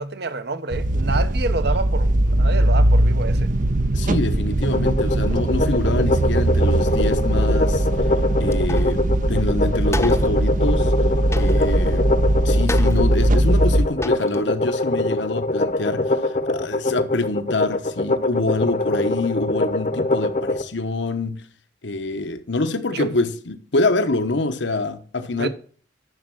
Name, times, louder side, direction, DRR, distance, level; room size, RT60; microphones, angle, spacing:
voice 1, 0.0-3.5 22.9-23.1 25.4-25.5, right 3 dB, 60° right, 1.1 m, -28 dB
sound 1, 0.7-13.9, right 1 dB, 45° right, 0.6 m, -20 dB
voice 2, 3.9-7.9 8.4-10.9 11.4-12.2 12.4-21.5 21.8-25.5, left 2 dB, 80° left, 1.1 m, -26 dB
sound 2, 4.6-20.6, left 2 dB, 45° left, 0.9 m, -23 dB
sound 3, 8.5-9.0 9.3-9.4 9.9-10.4 11.3-12.0 12.7-13.3 13.7-13.8 14.0-14.4, left 2 dB, 15° left, 0.8 m, -31 dB
11.0 x 6.5 x 6.2 m
head